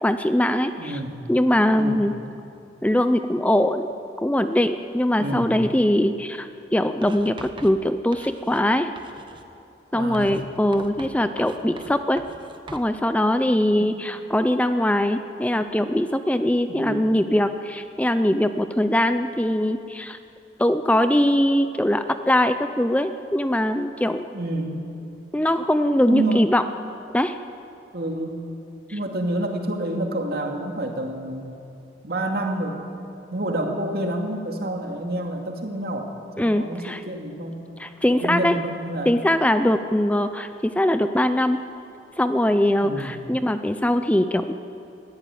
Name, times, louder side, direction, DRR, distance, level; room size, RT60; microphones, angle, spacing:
voice 1, 0.0-1.0 1.3-2.1 2.8-3.9 4.2-8.9 9.9-12.2 12.7-20.2 20.6-24.2 25.3-26.6 27.1-27.3 36.4-37.0 37.8-38.5 39.1-41.6 42.2-44.5, left 1 dB, 10° left, 9 dB, 0.5 m, -21 dB
voice 2, 0.8-1.2 1.7-2.0 5.2-5.6 9.9-10.5 13.8-13.9 16.7-17.1 24.3-24.8 26.1-26.5 27.9-28.4 28.9-31.6 32.0-32.8 33.3-37.6 38.1-39.1 42.8-43.2, right 1 dB, 60° right, 2 dB, 2.5 m, -28 dB
Writing, 7.0-8.7 9.0-9.5 10.1-12.9, right 2 dB, 30° right, 1.1 m, -43 dB
21.0 x 15.0 x 9.2 m, 2.7 s
head